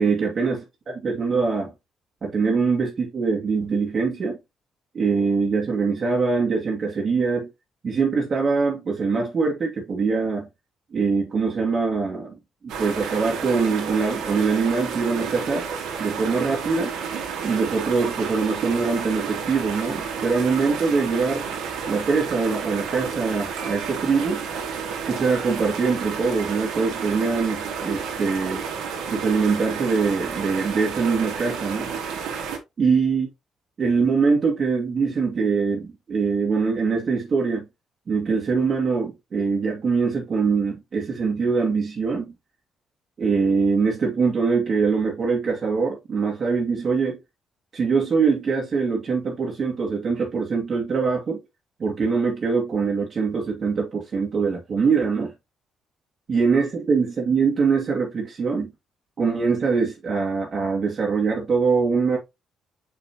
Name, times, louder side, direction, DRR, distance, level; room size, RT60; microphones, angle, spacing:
voice 1, 0.0-1.7 2.2-4.4 4.9-7.5 7.8-10.5 10.9-12.4 12.6-15.7 16.0-16.9 17.4-21.4 21.9-24.4 25.1-28.6 29.1-31.9 32.8-33.3 33.8-37.7 38.1-42.3 43.2-47.2 47.7-51.4 51.8-55.3 56.3-58.7 59.2-62.2, right 5 dB, 45° right, 2.2 m, -23 dB
sound 1, 12.7-32.6, right 6 dB, 90° right, 2.2 m, -31 dB
5.9 x 5.6 x 3.0 m
cardioid pair, 90°, 0 cm